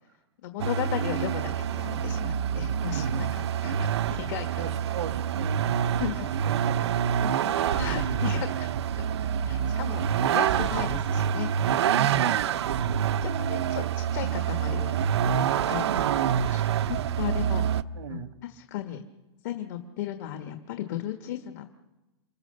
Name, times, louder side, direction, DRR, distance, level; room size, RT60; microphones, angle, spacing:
voice 1, 0.4-3.3 3.6-4.7 6.0-6.3 7.7-8.7 9.4-11.5 13.2-14.9 15.2-15.8 16.5-16.6 17.2-17.6 18.1-19.0 19.4-21.7, left 12 dB, 40° left, 6 dB, 1.6 m, -35 dB
Vehicle, 0.6-17.8, right 8 dB, 65° right, 0.9 m, -27 dB
voice 2, 2.9-3.3 4.6-7.6 7.9-8.2 12.0-13.1 14.2-14.4 15.9-16.5 18.0-18.3, right 6 dB, 90° right, 8 dB, 2.0 m, -36 dB
29.0 x 25.5 x 6.8 m, 1.1 s
supercardioid pair, 170°, 15 cm